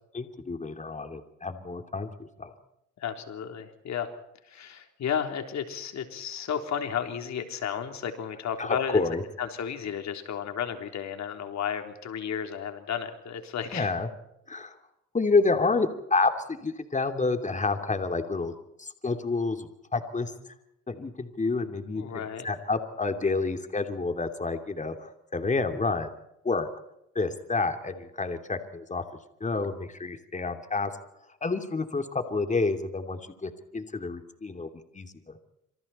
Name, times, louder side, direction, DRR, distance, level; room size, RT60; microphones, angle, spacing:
voice 1, 0.1-2.1 2.4-2.5 8.6-9.2 13.7-14.1 14.5-14.8 15.1-18.5 18.8-20.3 20.9-26.1 26.4-26.7 27.1-29.0 29.4-30.9 31.4-34.7 34.9-35.4, left 3 dB, 25° left, 7 dB, 2.9 m, -29 dB
voice 2, 3.0-4.1 4.5-9.0 9.4-13.9 21.9-22.5, left 8 dB, 65° left, 6 dB, 3.7 m, -33 dB
27.5 x 27.0 x 4.4 m, 0.84 s
cardioid pair, 90°, 30 cm